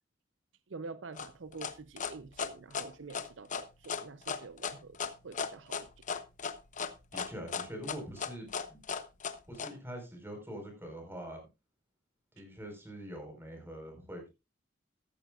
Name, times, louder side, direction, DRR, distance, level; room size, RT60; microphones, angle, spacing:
voice 1, 0.7-5.9, right 4 dB, 75° right, 0.7 m, -47 dB
sound 1, 1.2-9.7, left 6 dB, 45° left, 0.9 m, -36 dB
voice 2, 7.1-8.8 9.5-11.4 12.4-14.3, equal, 10° right, 4.6 m, -44 dB
14.0 x 14.0 x 2.4 m
head